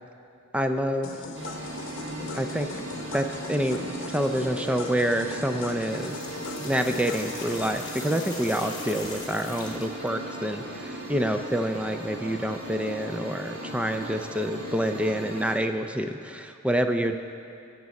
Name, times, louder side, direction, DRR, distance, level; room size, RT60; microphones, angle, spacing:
voice 1, 0.5-1.1 2.3-2.7 3.1-3.8 4.1-6.1 6.6-17.2, equal, 5° right, 7 dB, 0.4 m, -27 dB
sound 1, 1.0-7.7, left 3 dB, 70° left, 0.9 m, -40 dB
sound 2, 1.3-15.6, right 1 dB, 60° right, 1.3 m, -38 dB
sound 3, 5.7-10.1, left 3 dB, 20° left, 1.2 m, -41 dB
17.0 x 6.0 x 4.1 m, 2.7 s
head